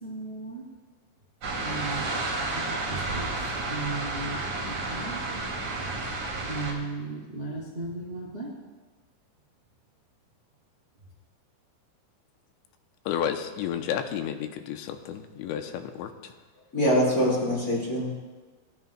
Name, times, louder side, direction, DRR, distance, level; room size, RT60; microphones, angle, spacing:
voice 1, 0.0-0.6 1.6-2.1 2.5-3.3 3.7-4.4 4.7-5.2 6.5-8.5, right 3 dB, 75° right, -3 dB, 0.5 m, -36 dB
virginia baytunnel, 1.4-6.7, right 2 dB, 45° right, 3.2 m, -31 dB
voice 2, 13.1-16.3, left 9 dB, 85° left, 6 dB, 2.9 m, -32 dB
voice 3, 16.7-18.1, equal, 20° left, -4 dB, 4.1 m, -24 dB
29.0 x 13.0 x 2.3 m, 1.3 s
omnidirectional pair, 5.5 m